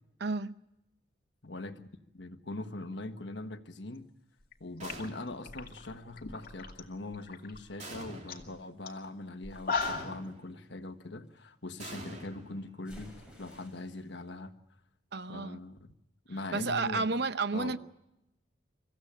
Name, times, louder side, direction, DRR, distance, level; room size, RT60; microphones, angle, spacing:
voice 1, 0.2-0.6 15.1-15.6 16.5-17.8, right 3 dB, 60° right, 0.7 m, -31 dB
voice 2, 1.4-1.9 2.1-4.1 4.6-14.5 15.3-15.9 16.3-17.0 17.5-17.8, left 2 dB, 70° left, 1.4 m, -41 dB
sound 1, 4.4-4.5 4.8-6.8 7.1-7.6 7.9-8.0 8.3-8.5 8.9-9.0 9.4-10.2, left 4 dB, 50° left, 2.4 m, -36 dB
sound 2, 4.8-5.5 7.8-8.6 9.8-10.6 11.8-13.0, right 1 dB, 40° right, 2.9 m, -46 dB
sound 3, 9.5-11.4 12.8-14.1, equal, 5° right, 6.6 m, -55 dB
25.0 x 15.0 x 8.8 m
head